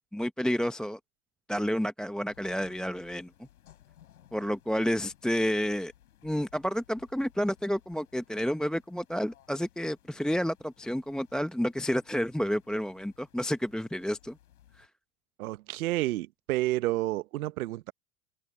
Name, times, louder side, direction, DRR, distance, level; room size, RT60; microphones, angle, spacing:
voice 1, 0.1-1.0 1.5-3.3 4.3-5.9 6.2-14.4 14.8-14.9, equal, ahead, 0.8 m, -30 dB
sound 1, 2.3-14.9, left 12 dB, 85° left, 6.8 m, -61 dB
voice 2, 15.4-17.9, right 17 dB, 80° right, 1.1 m, -30 dB
hypercardioid pair, 95°, 43 cm